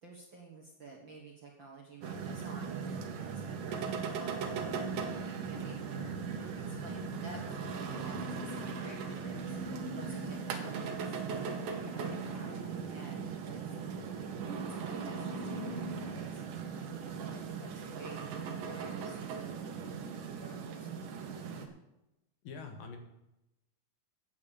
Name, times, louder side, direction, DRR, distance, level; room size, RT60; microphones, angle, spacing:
voice 1, 0.0-5.1 5.4-6.2 6.5-11.1 11.8-12.6 12.9-13.7 14.7-16.4 17.0-18.3 18.5-19.6 20.4-21.1, right 3 dB, 50° right, -1 dB, 1.6 m, -51 dB
sound 1, 2.0-21.7, right 6 dB, 70° right, 2.6 m, -39 dB
sound 2, 4.6-16.1, left 2 dB, 50° left, 5.9 m, -47 dB
voice 2, 22.4-23.0, left 5 dB, 80° left, 4 dB, 3.3 m, -44 dB
9.5 x 7.2 x 8.4 m, 0.91 s
omnidirectional pair, 4.0 m